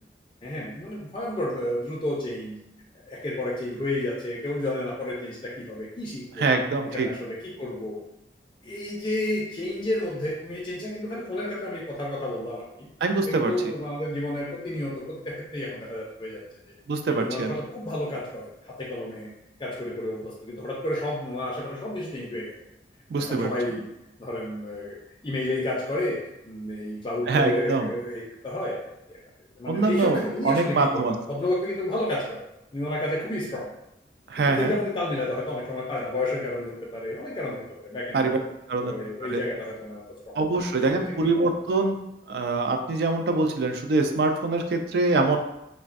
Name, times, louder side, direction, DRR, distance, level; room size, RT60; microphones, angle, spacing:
voice 1, 0.4-2.6 3.1-6.5 6.9-8.0 8.6-12.6 13.3-16.4 17.1-19.3 19.6-22.5 23.2-23.9 24.2-28.8 29.1-29.2 29.6-32.4 32.7-33.7 34.4-38.3 38.8-41.5, left 1 dB, 30° left, -4 dB, 0.4 m, -31 dB
voice 2, 6.4-7.1 13.0-13.5 16.9-17.6 23.1-23.5 27.3-27.9 29.7-31.1 34.3-34.7 38.1-38.4 38.7-38.9 39.3-39.4 40.4-42.0 42.3-45.4, right 3 dB, 65° right, 5 dB, 0.3 m, -24 dB
3.2 x 2.1 x 2.4 m, 0.85 s
head